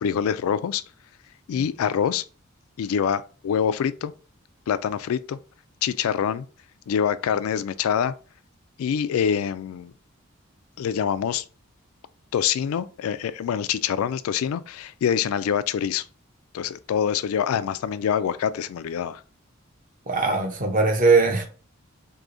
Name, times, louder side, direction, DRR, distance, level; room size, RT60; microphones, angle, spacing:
voice 1, 0.0-0.8 1.5-2.3 2.8-4.1 4.7-5.4 5.8-6.5 6.9-8.1 8.8-9.9 10.8-11.4 12.3-16.1 16.5-19.2, left 8 dB, 75° left, 0.3 m, -25 dB
voice 2, 20.1-21.5, right 3 dB, 40° right, 0.7 m, -20 dB
4.8 x 2.7 x 2.5 m
head